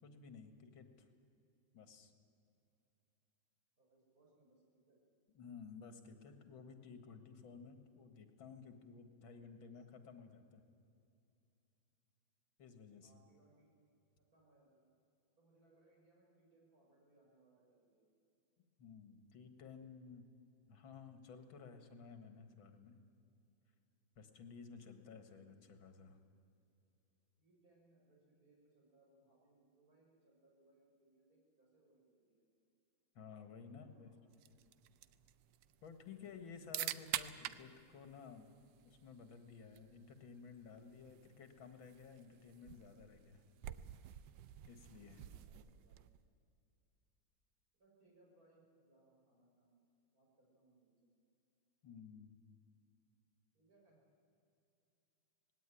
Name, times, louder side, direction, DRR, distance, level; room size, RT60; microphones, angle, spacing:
voice 1, 0.0-1.1 1.7-2.1 5.3-10.6 12.6-13.1 18.8-20.3 20.7-23.0 24.2-26.2 33.2-34.1 35.8-38.5 38.8-43.4 44.7-45.3 51.8-52.3, left 5 dB, 90° left, 7 dB, 2.4 m, -55 dB
voice 2, 3.8-5.0 13.0-13.7 14.2-14.9 15.4-18.0 27.4-32.4 33.7-34.5 45.3-46.0 47.7-49.8 50.1-51.1 53.5-54.0, right 2 dB, 45° right, -2 dB, 6.3 m, -71 dB
sound 1, 34.3-46.3, right 12 dB, 75° right, 1.3 m, -49 dB
19.0 x 17.0 x 10.0 m, 2.7 s
omnidirectional pair, 2.1 m